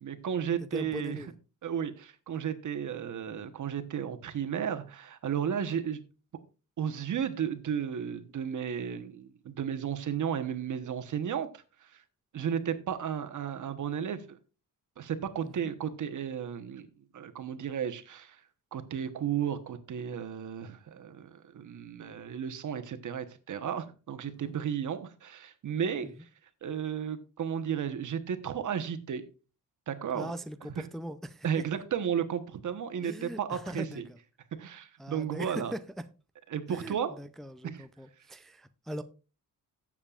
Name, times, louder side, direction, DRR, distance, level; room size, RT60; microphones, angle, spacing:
voice 1, 0.0-1.2 1.6-6.0 6.8-12.0 12.3-14.4 15.0-18.4 18.7-26.3 26.6-29.2 29.9-30.3 30.8-30.9 31.4-34.0 34.6-35.7 36.5-37.2 37.6-37.8, right 8 dB, 60° right, 9 dB, 1.1 m, -34 dB
voice 2, 0.7-1.3 15.4-15.7 24.2-24.5 26.0-26.1 30.1-31.5 33.0-34.2 35.0-35.8 36.7-39.0, equal, ahead, 10 dB, 0.4 m, -40 dB
17.0 x 7.3 x 2.4 m, 0.34 s
wide cardioid pair, 125°, 33 cm